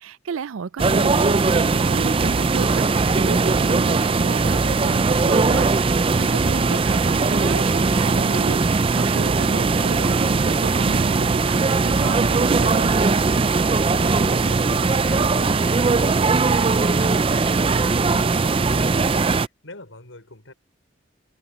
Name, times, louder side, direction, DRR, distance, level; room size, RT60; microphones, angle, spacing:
voice 1, 0.0-12.9, right 6 dB, 85° right, 0.4 m, -32 dB
sound 1, 0.8-19.5, right 4 dB, 25° right, 0.4 m, -19 dB
voice 2, 13.8-20.5, left 3 dB, 75° left, 5.1 m, -42 dB
head